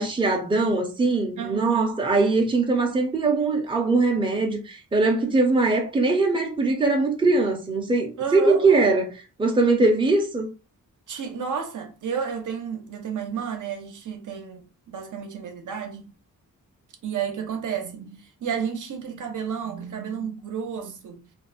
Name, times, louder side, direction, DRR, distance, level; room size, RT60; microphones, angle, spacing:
voice 1, 0.0-9.1 9.4-10.5, right 3 dB, 15° right, 0.6 m, -21 dB
voice 2, 1.4-1.9 8.2-8.6 11.1-16.1 17.0-21.2, right 7 dB, 65° right, 0.7 m, -31 dB
2.5 x 2.1 x 3.9 m
wide cardioid pair, 125°, 33 cm